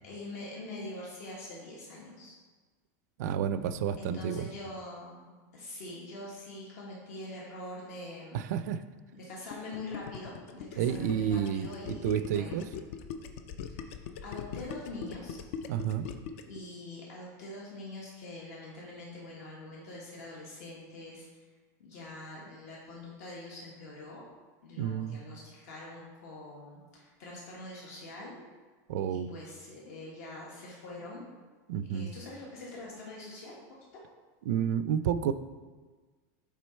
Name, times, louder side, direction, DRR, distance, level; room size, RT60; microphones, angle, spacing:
voice 1, 0.0-2.4 4.0-8.4 9.1-12.6 13.8-15.4 16.4-21.3 21.8-24.2 24.6-28.4 29.1-31.3 31.9-33.5, left 2 dB, 60° left, -4 dB, 1.3 m, -44 dB
voice 2, 3.2-4.5 8.3-8.8 10.8-12.7 15.7-16.1 24.8-25.2 28.9-29.3 31.7-32.1 34.5-35.3, right 9 dB, 65° right, 12 dB, 0.4 m, -30 dB
Gurgling, 9.5-16.6, left 7 dB, 45° left, 0.4 m, -41 dB
6.2 x 3.8 x 4.3 m, 1.4 s
supercardioid pair, 175°, 10 cm